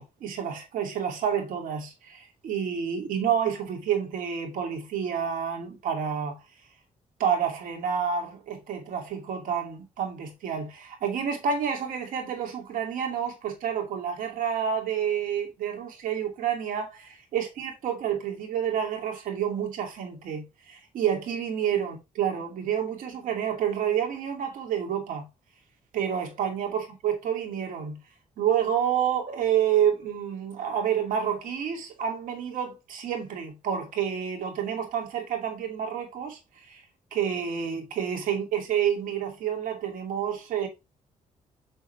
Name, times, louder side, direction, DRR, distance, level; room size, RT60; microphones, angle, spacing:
voice 1, 0.0-6.4 7.2-25.2 25.9-28.0 28.4-36.4 36.7-36.8 37.1-40.7, right 8 dB, 85° right, 2.5 m, -29 dB
6.7 x 6.3 x 3.3 m
cardioid pair, 95°, 14 cm